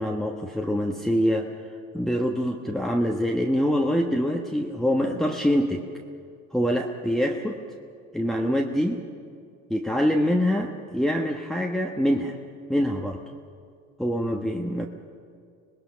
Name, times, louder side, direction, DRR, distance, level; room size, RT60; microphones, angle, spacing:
voice 1, 0.0-1.5 1.9-5.8 6.5-7.6 8.1-9.1 9.7-12.4 12.7-13.2 14.0-14.9, equal, ahead, 1 dB, 1.2 m, -25 dB
26.0 x 19.0 x 5.8 m, 2.3 s
hypercardioid pair, 75°, 41 cm